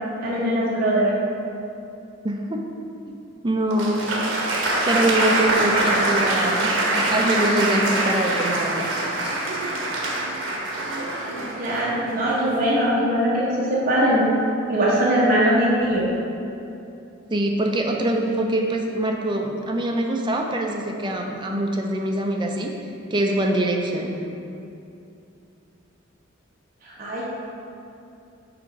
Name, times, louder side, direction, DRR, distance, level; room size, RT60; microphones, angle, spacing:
voice 1, 0.2-1.1 11.6-14.2 14.7-16.1 26.8-27.2, equal, 45° right, -8 dB, 1.1 m, -21 dB
voice 2, 2.2-2.6 3.1-3.2 3.4-4.1 4.8-8.9 17.3-22.7 23.1-24.2, right 1 dB, 25° right, 2 dB, 0.5 m, -24 dB
Applause, 3.7-12.6, right 2 dB, 75° right, 1.0 m, -24 dB
5.9 x 3.9 x 5.2 m, 2.7 s
head